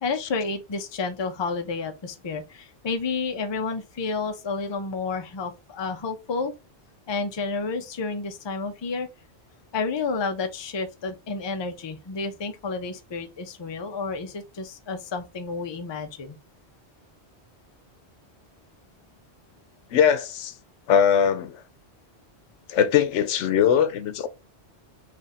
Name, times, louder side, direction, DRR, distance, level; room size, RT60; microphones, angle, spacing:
voice 1, 0.0-6.5 7.1-9.1 9.7-16.4, left 4 dB, 35° left, 0.4 m, -30 dB
voice 2, 19.9-20.5 20.9-21.5 22.7-24.3, left 8 dB, 85° left, 0.9 m, -21 dB
3.2 x 2.5 x 4.1 m
omnidirectional pair, 1.2 m